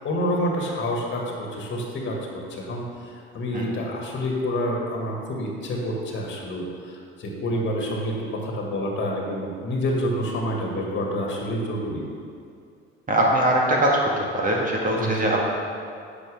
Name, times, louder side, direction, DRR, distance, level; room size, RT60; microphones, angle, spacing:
voice 1, 0.0-2.2 2.5-12.1 14.9-15.1, equal, 35° left, -1 dB, 2.0 m, -28 dB
voice 2, 13.1-14.0 14.3-15.4, right 1 dB, 25° right, -2 dB, 1.7 m, -21 dB
11.0 x 7.8 x 3.6 m, 2.4 s
figure-of-eight pair, 65°, 33 cm